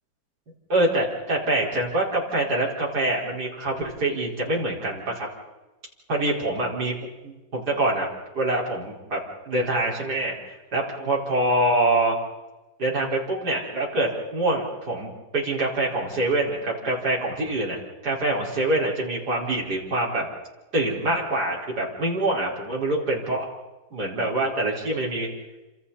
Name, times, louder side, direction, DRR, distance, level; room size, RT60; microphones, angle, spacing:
voice 1, 0.7-5.3 6.1-6.9 7.2-8.1 8.3-9.2 9.5-12.2 12.8-17.8 18.0-20.3 20.7-23.5 23.9-25.3, right 2 dB, 50° right, -3 dB, 5.5 m, -25 dB
29.5 x 27.0 x 4.3 m, 1.1 s
omnidirectional pair, 2.1 m